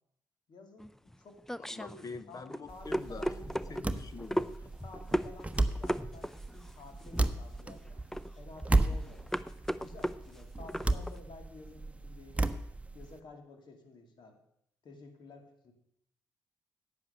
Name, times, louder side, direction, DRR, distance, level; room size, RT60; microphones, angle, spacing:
voice 1, 0.5-1.4 1.7-3.8 4.8-8.0 8.4-9.3 9.8-12.5 12.9-14.4 14.8-15.7, left 3 dB, 60° left, 5 dB, 2.6 m, -52 dB
sound 1, 0.8-11.2, equal, 5° left, 0.6 m, -37 dB
voice 2, 1.6-3.3 3.7-4.7, left 4 dB, 45° left, 13 dB, 1.2 m, -45 dB
sound 2, 2.7-13.2, right 2 dB, 15° right, 1.0 m, -34 dB
11.0 x 8.4 x 6.6 m, 0.75 s
hypercardioid pair, 45°, 9 cm